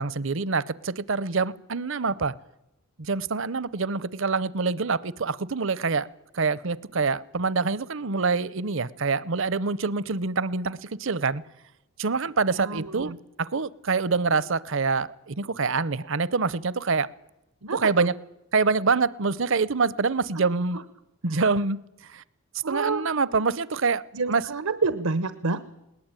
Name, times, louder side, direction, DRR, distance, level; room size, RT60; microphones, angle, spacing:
voice 1, 0.0-2.3 3.0-6.1 6.3-11.4 12.0-13.1 13.4-17.1 17.7-18.1 18.5-20.8 21.2-22.2 22.7-24.0 24.3-24.4, right 4 dB, 60° right, 20 dB, 0.7 m, -26 dB
voice 2, 12.5-13.2 17.6-18.1 20.3-20.4 20.7-20.8 21.3-21.4 22.6-23.0 24.1-25.7, right 4 dB, 90° right, 14 dB, 1.1 m, -28 dB
21.0 x 19.0 x 9.0 m, 0.92 s
head